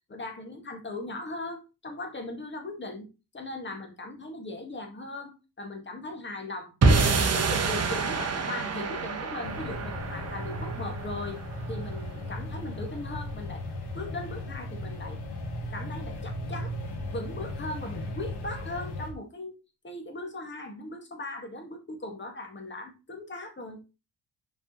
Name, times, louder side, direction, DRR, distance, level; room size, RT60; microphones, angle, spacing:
voice 1, 0.1-3.1 3.3-6.8 7.1-11.4 11.7-13.6 13.9-15.2 15.7-16.7 17.1-19.6 19.8-23.9, left 2 dB, 25° left, 3 dB, 1.9 m, -38 dB
sound 1, 6.8-13.2, right 4 dB, 35° right, 1.1 m, -28 dB
sound 2, 9.4-19.1, left 1 dB, 60° left, 2.4 m, -36 dB
6.5 x 5.3 x 3.1 m, 0.28 s
cardioid pair, 130°, 42 cm